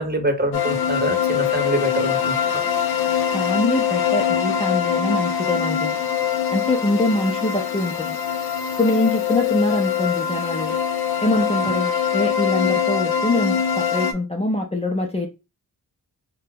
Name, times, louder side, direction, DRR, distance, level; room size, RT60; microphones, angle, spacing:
voice 1, 0.0-2.6 11.6-11.7, right 1 dB, 25° right, 0.8 m, -25 dB
sound 1, 0.5-14.1, left 8 dB, 70° left, 0.5 m, -23 dB
voice 2, 3.2-6.0 6.5-8.2 8.8-10.8 11.2-15.3, left 2 dB, 15° left, 0.5 m, -23 dB
2.5 x 2.2 x 3.4 m
cardioid pair, 70°, 39 cm